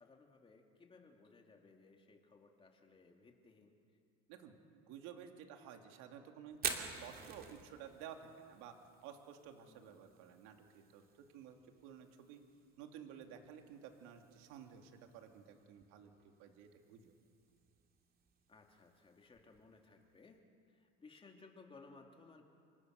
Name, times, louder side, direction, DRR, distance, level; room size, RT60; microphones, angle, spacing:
voice 1, 0.0-3.8 9.7-10.0 18.5-22.4, left 3 dB, 15° left, 2 dB, 2.8 m, -61 dB
voice 2, 4.3-8.7 9.0-11.0 11.3-12.4 12.8-17.1, right 8 dB, 65° right, 4 dB, 2.9 m, -54 dB
Fire, 6.5-20.4, right 6 dB, 30° right, 2.6 m, -50 dB
28.5 x 25.0 x 6.7 m, 2.4 s
cardioid pair, 145°, 32 cm